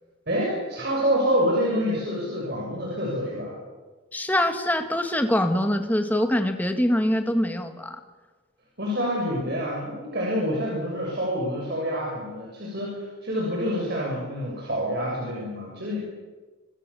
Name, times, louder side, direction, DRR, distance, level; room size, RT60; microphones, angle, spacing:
voice 1, 0.3-3.6 8.8-16.0, equal, 50° right, -3 dB, 7.4 m, -27 dB
voice 2, 4.1-8.0, left 1 dB, 10° left, 6 dB, 2.0 m, -24 dB
26.5 x 24.5 x 7.2 m, 1.3 s
head